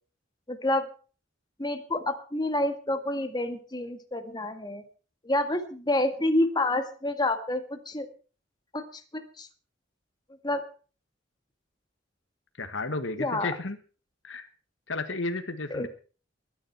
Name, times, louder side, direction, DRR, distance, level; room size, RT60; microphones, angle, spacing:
voice 1, 0.5-0.9 1.6-4.8 5.2-8.1 8.7-9.5 10.4-10.6 13.2-13.5 15.7-15.9, left 1 dB, 20° left, 6 dB, 1.8 m, -28 dB
voice 2, 12.6-13.8 14.2-14.5 14.9-15.9, left 3 dB, 85° left, 8 dB, 1.6 m, -32 dB
22.0 x 10.0 x 4.6 m, 0.38 s
head